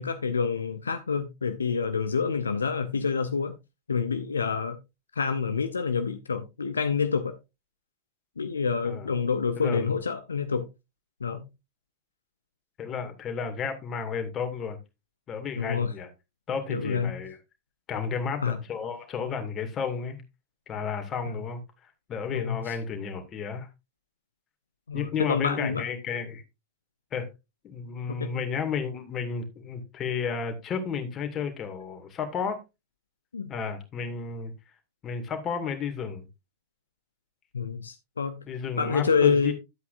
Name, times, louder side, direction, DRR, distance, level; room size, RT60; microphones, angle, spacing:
voice 1, 0.0-3.6 3.9-4.8 5.1-7.3 8.4-10.7 11.2-11.5 15.6-15.9 16.7-17.1 18.4-18.6 21.3-21.4 22.3-22.7 24.9-25.8 28.1-28.3 33.3-33.5 37.5-38.4 38.8-39.5, left 5 dB, 75° left, 0.6 m, -27 dB
voice 2, 9.6-10.0 12.8-14.8 15.3-16.1 16.5-17.4 17.9-20.2 20.7-23.7 24.9-26.4 27.1-27.3 27.6-32.6 33.5-34.5 35.0-36.3 38.5-39.5, left 6 dB, 25° left, 2.1 m, -32 dB
11.5 x 8.2 x 2.5 m
figure-of-eight pair, 90°, 0 cm